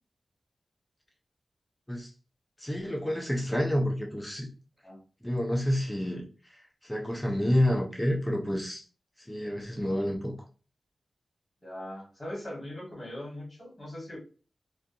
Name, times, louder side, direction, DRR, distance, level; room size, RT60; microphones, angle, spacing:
voice 1, 2.6-4.5 5.2-8.8 9.2-10.4, left 1 dB, 10° left, 0 dB, 0.5 m, -29 dB
voice 2, 11.6-14.2, left 1 dB, 25° left, -3 dB, 1.4 m, -40 dB
2.5 x 2.3 x 2.5 m, 0.36 s
wide cardioid pair, 115°, 0 cm